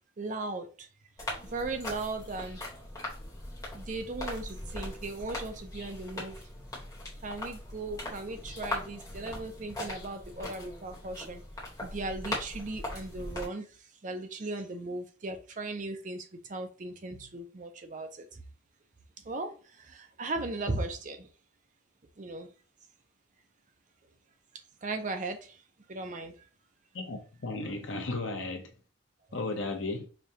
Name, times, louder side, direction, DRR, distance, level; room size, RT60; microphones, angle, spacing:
voice 1, 0.2-0.9 1.4-2.7 3.7-6.4 7.2-11.4 11.8-18.4 19.2-21.3 22.2-22.5 24.8-25.6 25.9-26.4, right 2 dB, 40° right, 0.5 m, -37 dB
sound 1, 1.2-13.4, left 1 dB, 20° left, 1.2 m, -40 dB
voice 2, 26.9-28.7 29.3-30.1, left 2 dB, 70° left, 0.9 m, -34 dB
5.0 x 2.3 x 2.8 m
head